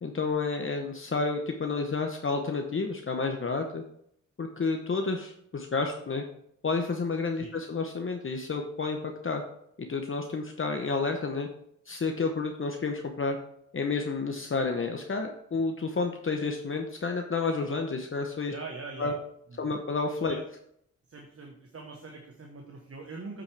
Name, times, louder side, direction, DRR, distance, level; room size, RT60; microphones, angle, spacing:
voice 1, 0.0-3.8 4.4-6.2 6.6-9.4 9.9-11.5 11.9-13.4 13.7-18.5 19.0-19.1 19.6-20.4, left 4 dB, 40° left, 3 dB, 0.9 m, -30 dB
voice 2, 18.5-19.1 19.5-19.8 20.3-20.4 21.1-23.4, right 4 dB, 45° right, 2 dB, 1.2 m, -42 dB
8.2 x 6.1 x 3.4 m, 0.71 s
cardioid pair, 65°, 31 cm